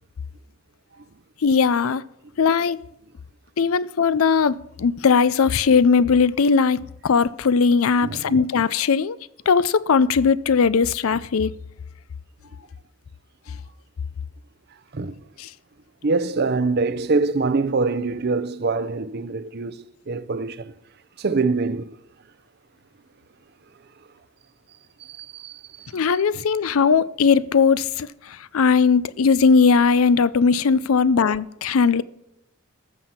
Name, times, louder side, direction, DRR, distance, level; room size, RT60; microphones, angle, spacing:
voice 1, 1.4-2.0 2.4-2.8 3.6-9.2 9.5-11.5 15.4-15.5 25.9-32.0, left 5 dB, 90° left, 0.5 m, -19 dB
voice 2, 8.0-8.4 14.9-15.3 16.0-20.7 21.2-22.0 23.8-23.9 25.0-25.9 26.4-26.5, right 3 dB, 50° right, 0.6 m, -25 dB
13.5 x 7.5 x 5.7 m
head